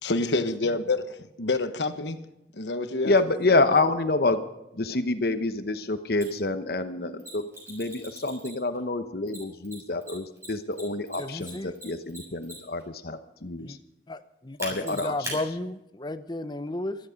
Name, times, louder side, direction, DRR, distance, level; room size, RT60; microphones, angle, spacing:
voice 1, 0.0-2.2 2.6-3.1, left 3 dB, 85° left, 1.2 m, -27 dB
voice 2, 3.0-4.4 4.7-13.8 14.6-15.4, left 2 dB, 60° left, 1.0 m, -27 dB
Mechanisms, 6.2-6.3 7.2-8.8 9.3-12.8 14.6-15.4, right 1 dB, 15° right, 7.4 m, -39 dB
voice 3, 11.2-11.7 13.6-13.8 14.1-14.6 14.8-17.0, left 2 dB, 25° left, 0.8 m, -33 dB
16.5 x 13.5 x 5.2 m
head